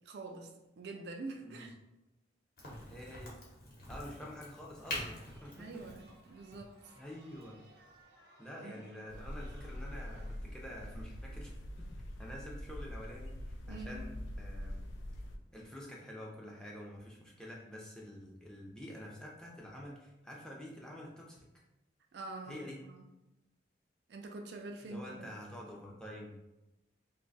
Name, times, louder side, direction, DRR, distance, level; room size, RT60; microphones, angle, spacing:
voice 1, 0.0-1.7 5.6-7.0 8.6-8.8 13.7-14.0 22.1-23.1 24.1-25.3, right 2 dB, 60° right, 3 dB, 0.3 m, -46 dB
Crack, 2.6-8.0, left 1 dB, 50° left, 0.9 m, -46 dB
voice 2, 2.9-3.3 3.9-5.8 7.0-7.6 8.4-11.9 12.2-14.8 15.5-21.5 22.5-22.8 24.8-26.4, equal, 5° left, -3 dB, 0.5 m, -48 dB
Chatter, 5.0-10.3, right 1 dB, 80° right, 0.9 m, -62 dB
sound 1, 9.1-15.4, left 1 dB, 80° left, 0.4 m, -44 dB
2.7 x 2.2 x 3.9 m, 0.96 s
head